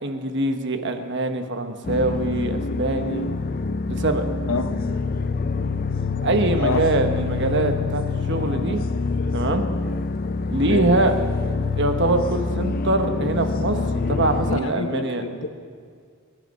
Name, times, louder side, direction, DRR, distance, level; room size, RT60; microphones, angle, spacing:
voice 1, 0.0-3.3 3.9-4.2 6.2-8.0 8.3-8.8 9.3-9.7 10.5-11.1 11.7-13.8 14.1-15.2, right 2 dB, 55° right, 6 dB, 1.2 m, -23 dB
sound 1, 1.8-14.6, left 4 dB, 40° left, 0.5 m, -26 dB
voice 2, 14.5-15.5, left 3 dB, 65° left, 8 dB, 1.1 m, -27 dB
23.0 x 11.0 x 5.4 m, 2.1 s
head